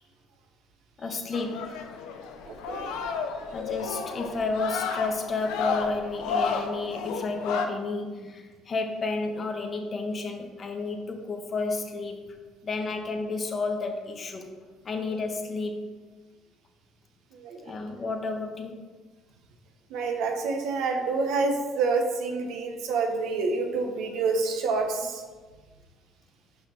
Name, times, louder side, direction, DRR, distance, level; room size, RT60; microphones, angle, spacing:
voice 1, 1.0-1.9 3.5-12.3 12.6-14.5 14.8-15.8 17.6-18.7 22.5-22.7, left 3 dB, 40° left, 4 dB, 1.3 m, -31 dB
sound 1, 1.3-7.7, left 5 dB, 85° left, 0.8 m, -32 dB
voice 2, 2.4-2.9 17.3-17.6 19.9-25.2, right 4 dB, 75° right, 3 dB, 1.3 m, -28 dB
5.8 x 5.6 x 6.0 m, 1.4 s
supercardioid pair, 90°, 0 cm